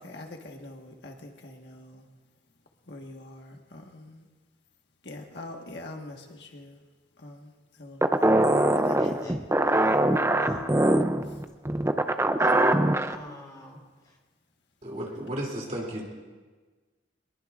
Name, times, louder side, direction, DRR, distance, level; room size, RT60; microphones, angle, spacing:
voice 1, 0.0-2.0 2.9-4.2 5.0-6.8 7.2-7.5 7.8-9.3, left 2 dB, 70° left, 2 dB, 1.5 m, -44 dB
sound 1, 8.0-13.1, right 1 dB, 15° right, 0.5 m, -23 dB
voice 2, 9.0-10.0 10.4-10.7 12.4-12.6 13.1-14.2, left 1 dB, 20° left, -2 dB, 4.2 m, -45 dB
voice 3, 14.8-16.0, right 1 dB, 40° right, -2 dB, 2.9 m, -33 dB
23.5 x 21.5 x 2.5 m, 1.4 s
head